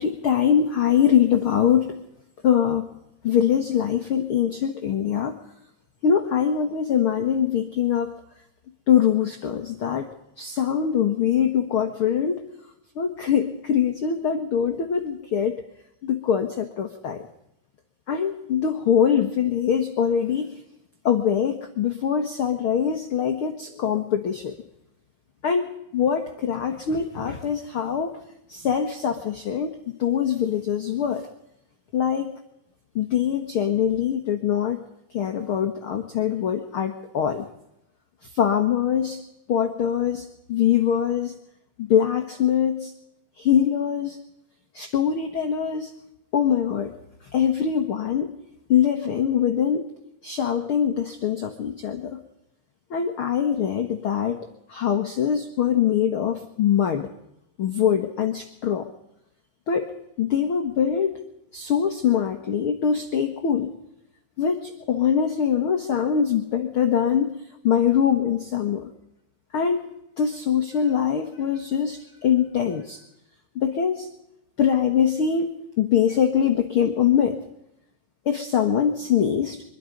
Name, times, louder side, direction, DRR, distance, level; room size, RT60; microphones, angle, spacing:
voice 1, 0.0-2.0 2.4-2.8 3.2-5.3 6.0-8.1 8.9-10.1 10.4-12.5 13.0-15.6 16.0-17.3 18.1-20.6 21.0-24.5 25.4-28.2 28.5-29.7 30.0-31.3 31.9-32.3 33.0-34.8 35.1-37.5 38.3-39.2 39.5-41.3 41.8-42.9 43.4-44.2 44.7-45.9 46.3-46.9 47.3-48.3 48.7-49.9 50.2-52.2 52.9-57.1 57.6-58.9 59.7-59.9 60.2-61.2 61.5-63.7 64.4-68.9 69.5-69.8 70.2-73.0 73.6-74.1 74.6-77.4 78.3-79.6, left 8 dB, 50° left, 6 dB, 1.8 m, -23 dB
24.5 x 22.5 x 5.3 m, 0.83 s
omnidirectional pair, 3.9 m